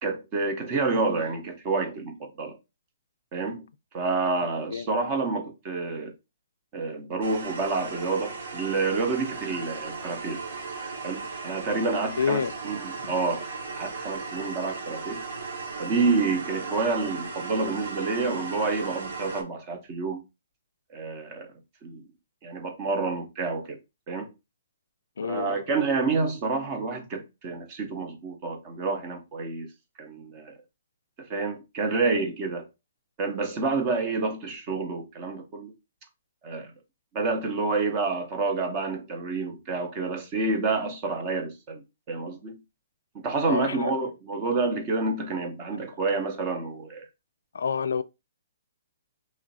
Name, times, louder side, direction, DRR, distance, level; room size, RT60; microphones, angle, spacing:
voice 1, 0.0-2.6 3.3-3.6 3.9-6.1 6.7-10.4 11.0-13.4 13.8-15.3 15.8-20.2 20.9-21.5 21.8-22.0 22.4-23.8 24.1-24.3 25.2-29.7 30.0-30.5 31.3-32.7 33.2-35.7 36.4-36.7 37.1-41.8 42.1-42.6 43.1-47.1, right 3 dB, 20° right, 0.6 m, -28 dB
sound 1, 7.2-19.4, right 4 dB, 55° right, 0.9 m, -36 dB
voice 2, 12.2-12.5 13.0-13.1 25.2-25.5 43.4-43.9 47.5-48.0, left 6 dB, 75° left, 0.3 m, -27 dB
3.0 x 2.4 x 4.0 m
hypercardioid pair, 180°, 0 cm